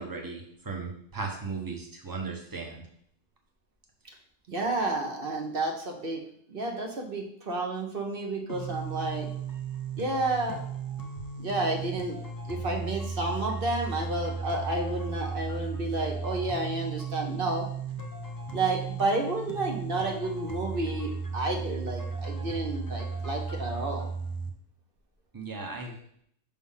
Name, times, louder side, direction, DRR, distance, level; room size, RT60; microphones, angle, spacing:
voice 1, 0.0-2.8 25.3-26.0, right 4 dB, 15° right, 1 dB, 1.0 m, -36 dB
voice 2, 4.5-6.2 6.5-9.3 10.0-10.6 11.4-12.2 12.5-17.7 18.5-24.1, right 2 dB, 45° right, 2 dB, 1.1 m, -31 dB
sound 1, 8.5-24.5, right 5 dB, 25° left, 0.5 m, -35 dB
6.0 x 3.7 x 5.6 m, 0.67 s
omnidirectional pair, 1.4 m